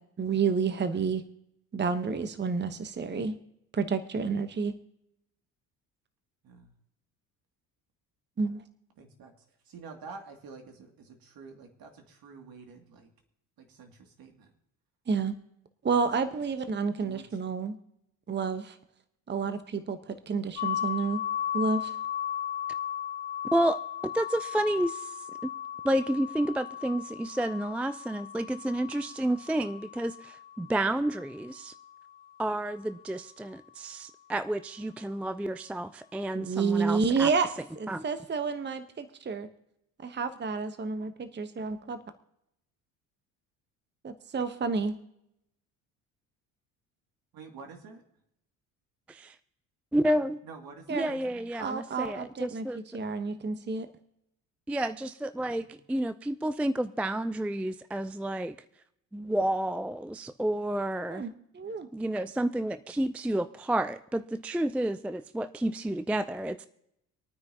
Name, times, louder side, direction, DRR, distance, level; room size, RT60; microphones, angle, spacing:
voice 1, 0.2-1.2 1.7-3.3 3.7-4.7 8.4-8.6 15.1-15.4 15.8-17.8 18.3-18.8 19.3-21.2 21.5-22.0 36.3-37.5 37.8-39.5 40.0-42.0 44.0-45.0 50.9-51.1 51.6-52.7 52.9-53.9 61.1-61.9, right 5 dB, 25° right, 10 dB, 1.0 m, -30 dB
voice 2, 9.0-9.3 9.7-13.1 13.6-14.5 17.0-17.2 47.3-48.0 50.4-51.5 55.6-55.7, right 4 dB, 55° right, 3 dB, 2.5 m, -48 dB
sound 1, 20.6-32.3, left 10 dB, 90° left, 1.6 m, -36 dB
voice 3, 24.1-25.5 25.8-31.7 32.4-37.3 37.9-38.0 49.1-49.4 49.9-50.4 50.9-52.8 54.7-58.6 59.1-61.3 61.9-66.7, right 1 dB, 5° right, 13 dB, 0.4 m, -30 dB
26.5 x 9.4 x 2.9 m, 0.78 s
hypercardioid pair, 60°, 42 cm